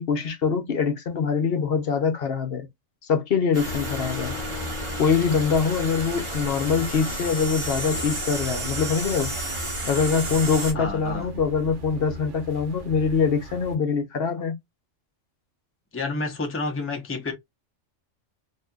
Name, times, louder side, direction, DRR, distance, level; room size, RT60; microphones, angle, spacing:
voice 1, 0.0-2.7 3.1-4.4 5.0-9.3 9.9-14.5, left 6 dB, 55° left, 1.0 m, -24 dB
sound 1, 3.5-10.7, right 2 dB, 25° right, 1.1 m, -32 dB
sound 2, 3.7-9.6, left 4 dB, 90° left, 1.0 m, -38 dB
sound 3, 4.1-13.8, right 1 dB, 75° right, 1.1 m, -40 dB
voice 2, 10.7-11.3 15.9-17.3, left 3 dB, 10° left, 0.9 m, -29 dB
4.1 x 2.8 x 2.3 m
omnidirectional pair, 1.3 m